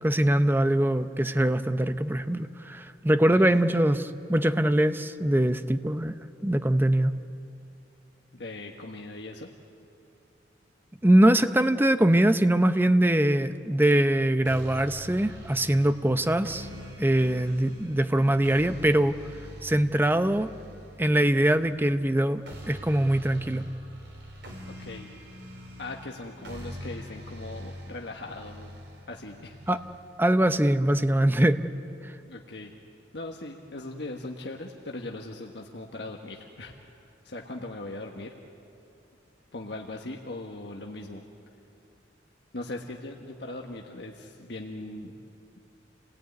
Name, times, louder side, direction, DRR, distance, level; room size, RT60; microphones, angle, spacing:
voice 1, 0.0-6.1 6.4-7.1 11.0-16.7 17.0-19.1 19.6-20.5 21.0-22.4 22.7-23.7 29.7-29.8 30.2-31.6 32.0-32.1, right 1 dB, 10° right, 10 dB, 0.7 m, -22 dB
voice 2, 8.3-9.5 24.6-25.1 25.8-28.8 29.1-29.6 32.2-32.7 33.1-36.7 37.2-38.3 39.5-41.2 42.5-45.1, left 2 dB, 65° left, 1 dB, 1.5 m, -39 dB
sound 1, 14.5-30.5, equal, 70° right, 4.0 m, -44 dB
28.5 x 18.5 x 9.6 m, 2.7 s
head